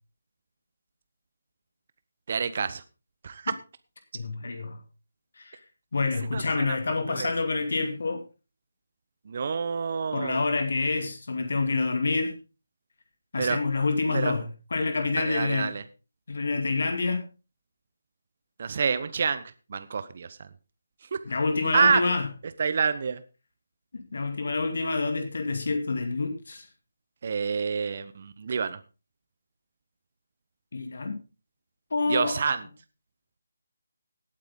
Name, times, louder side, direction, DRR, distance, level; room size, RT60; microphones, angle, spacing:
voice 1, 2.3-2.8 3.2-3.5 6.3-6.8 7.1-7.3 9.3-10.4 13.4-13.6 14.1-14.3 15.2-15.8 18.6-19.4 19.7-20.5 21.1-21.2 21.7-22.1 22.6-23.2 27.2-28.8 32.1-32.6, right 6 dB, 45° right, 12 dB, 1.0 m, -27 dB
voice 2, 4.1-4.8 5.4-5.6 5.9-8.2 10.1-12.4 13.3-14.5 14.7-15.7 16.3-17.3 21.3-22.3 23.9-26.7 30.7-31.2 31.9-32.5, left 3 dB, 55° left, 6 dB, 2.4 m, -27 dB
18.0 x 8.8 x 3.8 m, 0.32 s
figure-of-eight pair, 155°, 0 cm